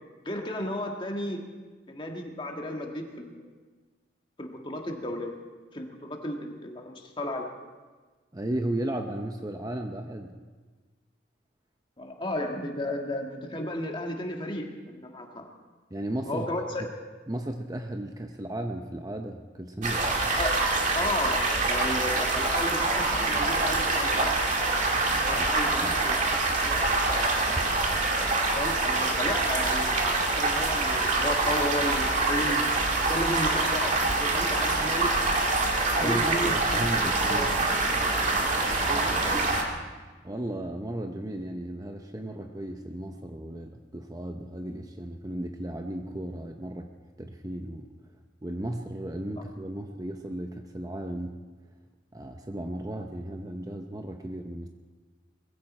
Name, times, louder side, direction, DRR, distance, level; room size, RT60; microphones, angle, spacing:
voice 1, 0.3-1.4 1.9-3.4 4.4-5.4 5.7-7.5 12.0-15.5 16.3-16.9 20.4-20.6 20.9-24.4 25.3-27.5 28.5-32.6 33.1-35.2 35.9-36.6 37.2-37.5 38.8-39.6, left 1 dB, 25° left, 2 dB, 1.7 m, -34 dB
voice 2, 8.3-10.4 15.9-16.5 17.3-20.1 25.3-26.0 36.0-37.6 40.2-46.9 47.2-47.9 48.4-51.4 52.1-54.7, right 1 dB, 20° right, 4 dB, 0.7 m, -35 dB
sound 1, 19.8-39.6, right 2 dB, 40° right, 2.1 m, -25 dB
20.5 x 15.5 x 4.3 m, 1.4 s
head